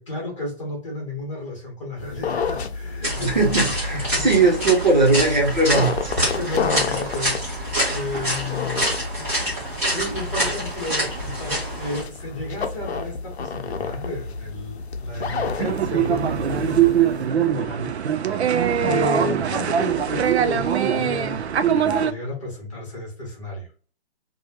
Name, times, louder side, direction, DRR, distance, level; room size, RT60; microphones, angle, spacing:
voice 1, 0.0-4.3 4.6-4.7 6.3-8.8 9.9-18.4 18.7-23.7, left 1 dB, 30° left, -2 dB, 1.3 m, -32 dB
sound 1, 2.0-17.3, left 5 dB, 75° left, 0.6 m, -31 dB
sound 2, 3.0-12.0, equal, 15° right, 0.9 m, -27 dB
voice 2, 3.2-6.1, right 3 dB, 45° right, 0 dB, 0.9 m, -19 dB
sound 3, 15.6-22.1, right 9 dB, 80° right, 0.5 m, -22 dB
3.1 x 2.3 x 2.8 m, 0.39 s
hypercardioid pair, 175°, 32 cm